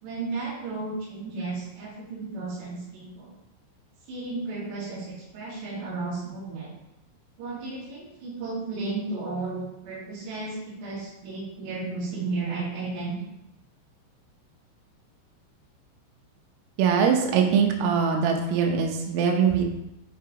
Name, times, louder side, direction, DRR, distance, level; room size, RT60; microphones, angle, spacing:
voice 1, 0.0-3.3 4.1-6.7 7.4-13.1, right 3 dB, 60° right, -7 dB, 4.3 m, -33 dB
voice 2, 16.8-19.7, right 6 dB, 85° right, 2 dB, 3.6 m, -22 dB
8.8 x 3.8 x 4.7 m, 0.87 s
omnidirectional pair, 5.8 m